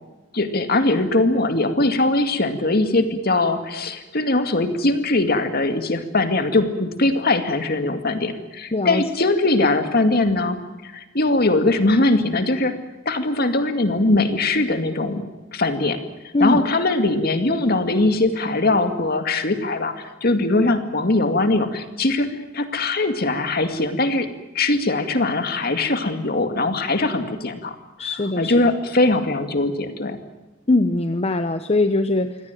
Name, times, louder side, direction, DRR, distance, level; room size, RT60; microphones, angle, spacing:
voice 1, 0.3-12.7 13.1-16.0 16.4-24.3 24.5-27.8 28.4-30.2, left 2 dB, 50° left, 7 dB, 2.2 m, -21 dB
voice 2, 8.7-9.0 16.3-16.6 28.0-28.5 30.7-32.4, left 2 dB, 30° left, 9 dB, 0.9 m, -21 dB
24.5 x 17.5 x 9.2 m, 1.1 s
head